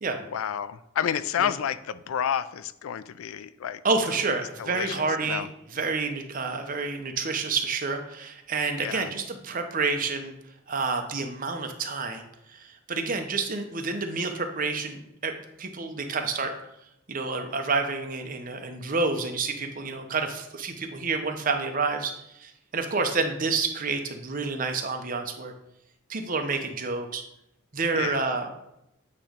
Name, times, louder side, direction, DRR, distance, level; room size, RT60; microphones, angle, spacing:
voice 1, 0.3-3.8 4.6-5.5 8.8-9.1 27.9-28.2, left 9 dB, 85° left, 15 dB, 0.4 m, -30 dB
voice 2, 3.8-10.3 10.7-12.2 12.5-16.5 17.1-25.5 26.1-27.2 27.7-28.6, right 4 dB, 40° right, 5 dB, 0.8 m, -29 dB
8.6 x 3.0 x 5.0 m, 0.84 s
head